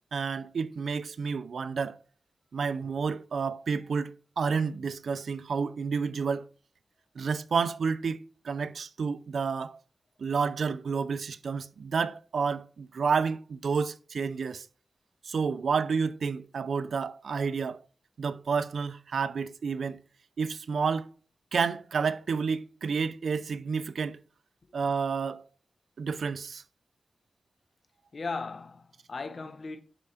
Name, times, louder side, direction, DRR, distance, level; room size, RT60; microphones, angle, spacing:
voice 1, 0.1-2.0 2.5-6.5 7.2-9.8 10.2-14.6 15.3-17.8 18.2-20.0 20.4-21.1 21.5-24.2 24.7-25.4 26.0-26.6, right 5 dB, 80° right, 0.6 m, -30 dB
voice 2, 28.1-29.8, left 4 dB, 60° left, 1.1 m, -37 dB
11.0 x 4.7 x 4.4 m
wide cardioid pair, 75°, 0 cm